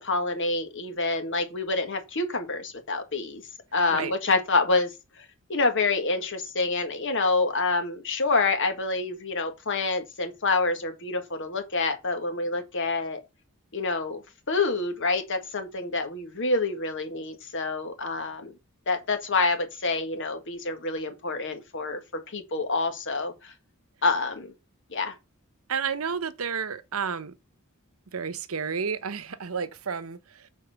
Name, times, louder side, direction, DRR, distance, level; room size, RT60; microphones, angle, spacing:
voice 1, 0.0-3.4 3.7-4.9 5.5-13.2 13.7-14.2 14.5-18.5 18.9-22.0 22.3-23.5 24.0-24.5 24.9-25.1, left 3 dB, 60° left, 1.9 m, -27 dB
voice 2, 25.7-27.3 28.1-30.5, right 6 dB, 75° right, 0.9 m, -31 dB
6.9 x 4.4 x 6.6 m
head